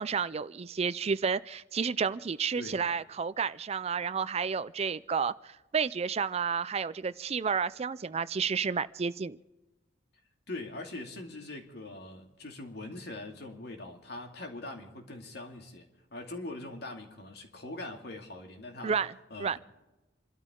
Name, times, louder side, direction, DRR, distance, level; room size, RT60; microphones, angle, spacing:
voice 1, 0.0-9.4 18.8-19.1 19.4-19.6, right 6 dB, 35° right, 0.4 m, -31 dB
voice 2, 10.5-19.0 19.3-19.6, left 2 dB, 60° left, 2.5 m, -42 dB
28.0 x 13.0 x 3.8 m
head